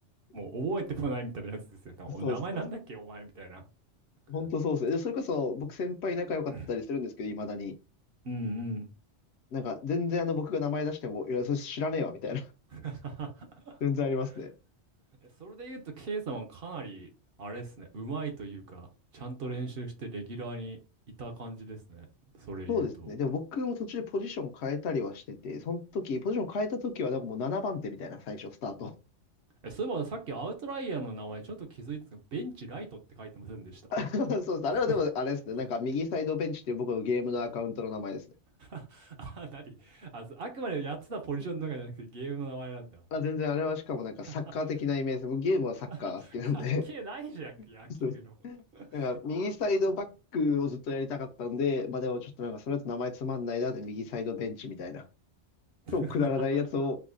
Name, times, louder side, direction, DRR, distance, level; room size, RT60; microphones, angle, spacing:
voice 1, 0.3-3.7 6.5-6.7 8.2-8.9 12.7-13.8 15.4-17.1 17.4-18.9 19.1-20.8 21.2-22.1 22.3-23.1 29.6-33.8 34.7-35.0 38.6-43.0 44.3-44.5 45.9-48.3 48.7-49.1 55.8-56.4, right 3 dB, 60° right, 0.9 m, -38 dB
voice 2, 2.2-2.6 4.3-7.7 9.5-12.4 13.8-14.5 22.7-28.9 33.9-38.2 43.1-46.8 48.0-48.1 48.4-48.6 48.9-55.0 55.9-57.0, left 4 dB, 70° left, 0.8 m, -31 dB
4.7 x 2.1 x 2.4 m
omnidirectional pair, 1.2 m